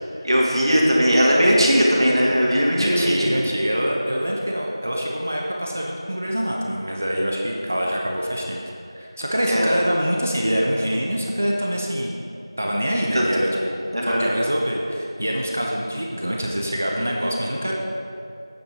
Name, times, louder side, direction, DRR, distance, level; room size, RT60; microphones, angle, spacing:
voice 1, 0.2-3.2 9.5-9.8 13.1-13.3 13.9-14.3, equal, 70° right, -3 dB, 2.3 m, -18 dB
voice 2, 2.8-8.6 8.9-12.2 12.6-17.7, equal, 25° right, -1 dB, 0.6 m, -25 dB
8.7 x 8.3 x 5.1 m, 2.6 s
figure-of-eight pair, 180°, 3 cm